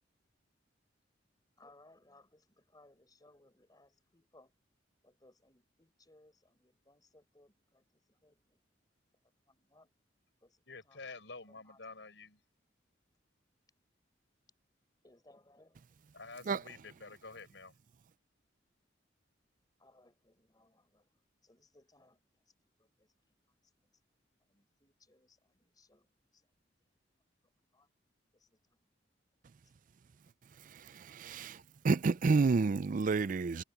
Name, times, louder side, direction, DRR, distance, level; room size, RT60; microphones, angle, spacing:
voice 1, 1.6-4.5 5.0-7.8 8.2-8.6 9.5-9.9 10.4-10.6 10.9-11.0 11.5-11.8 15.0-15.8 19.8-21.0 21.4-22.2 22.8-23.1 24.5-26.0 27.7-27.9, left 2 dB, 20° left, 4.7 m, -64 dB
voice 2, 10.7-12.4 16.1-17.7, left 3 dB, 75° left, 5.6 m, -49 dB
voice 3, 31.2-31.6 31.8-33.6, right 4 dB, 45° right, 0.4 m, -29 dB
head